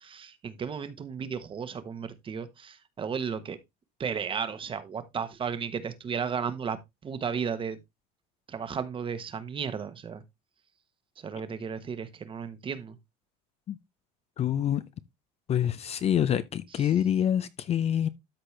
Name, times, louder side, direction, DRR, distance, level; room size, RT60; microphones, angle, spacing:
voice 1, 0.0-3.6 4.0-6.8 7.0-7.8 8.5-10.2 11.2-13.0, right 6 dB, 25° right, 1.1 m, -34 dB
voice 2, 14.4-14.8 15.5-18.1, left 10 dB, 30° left, 0.5 m, -26 dB
13.0 x 4.3 x 3.2 m
supercardioid pair, 130°, 20 cm